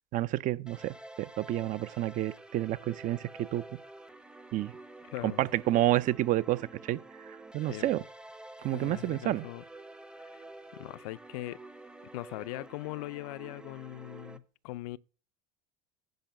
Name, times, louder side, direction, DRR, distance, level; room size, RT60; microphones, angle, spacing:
voice 1, 0.1-3.6 4.5-4.7 5.4-7.0 7.5-8.0 8.6-9.4, right 14 dB, 45° right, 0.5 m, -29 dB
sound 1, 0.7-14.4, right 2 dB, 5° right, 0.7 m, -49 dB
voice 2, 5.1-5.5 7.6-8.0 8.7-9.6 10.3-10.4 10.7-11.6 12.1-15.0, left 19 dB, 80° left, 0.5 m, -40 dB
10.5 x 5.1 x 6.6 m
supercardioid pair, 115°, 19 cm